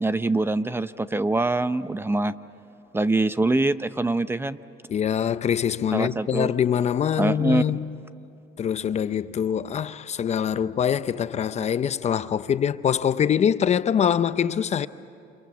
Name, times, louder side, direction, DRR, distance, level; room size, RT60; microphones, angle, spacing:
voice 1, 0.0-2.3 2.9-4.6 5.9-6.5 7.2-7.8, right 2 dB, 15° right, 0.6 m, -24 dB
voice 2, 4.9-7.9 8.6-14.9, left 8 dB, 40° left, 0.6 m, -24 dB
29.5 x 27.0 x 7.2 m
cardioid pair, 110°, 17 cm